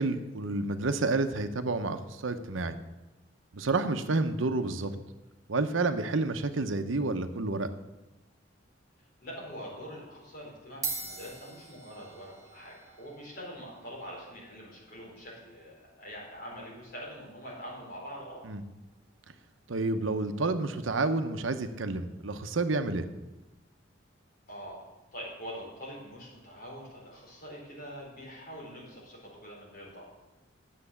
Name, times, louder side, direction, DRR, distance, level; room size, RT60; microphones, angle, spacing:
voice 1, 0.0-2.8 3.5-4.9 5.5-7.7 18.4-18.6 19.7-23.1, right 3 dB, 90° right, 9 dB, 0.8 m, -29 dB
voice 2, 9.2-18.4 24.5-30.0, equal, 50° left, -4 dB, 4.5 m, -44 dB
sound 1, 9.2-9.5 10.3-10.4 10.7-19.4, right 4 dB, 15° right, 2.0 m, -45 dB
10.0 x 7.6 x 7.1 m, 1.1 s
head